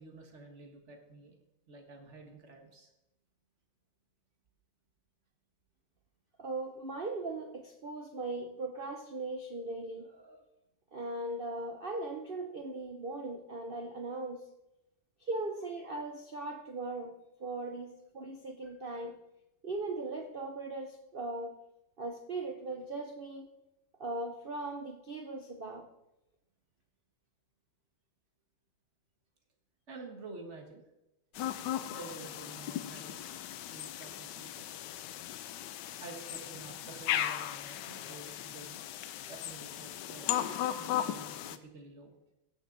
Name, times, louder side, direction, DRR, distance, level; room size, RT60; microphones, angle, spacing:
voice 1, 0.0-1.3 1.7-2.9 29.9-30.8 31.9-33.2 33.5-34.7 36.0-38.8 39.3-42.2, right 3 dB, 40° right, 3 dB, 1.6 m, -49 dB
voice 2, 6.4-10.4 10.9-14.4 15.2-17.1 17.4-19.2 19.6-21.6 22.0-23.5 24.0-25.9, right 2 dB, 85° right, 4 dB, 0.5 m, -39 dB
sound 1, 31.3-41.6, left 11 dB, 75° left, 1.1 m, -37 dB
17.0 x 6.3 x 3.9 m, 0.90 s
omnidirectional pair, 2.2 m